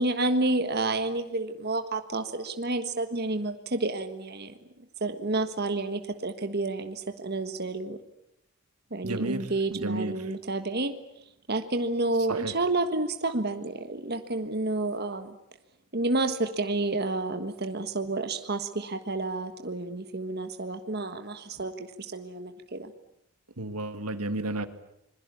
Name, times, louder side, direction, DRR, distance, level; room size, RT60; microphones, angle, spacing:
voice 1, 0.0-4.5 5.0-8.0 8.9-11.0 11.5-15.3 15.9-22.9, right 2 dB, 45° right, 8 dB, 1.5 m, -30 dB
voice 2, 9.0-10.3 12.3-12.5 23.6-24.7, right 2 dB, 90° right, 10 dB, 2.0 m, -32 dB
26.0 x 22.0 x 8.5 m, 0.79 s
head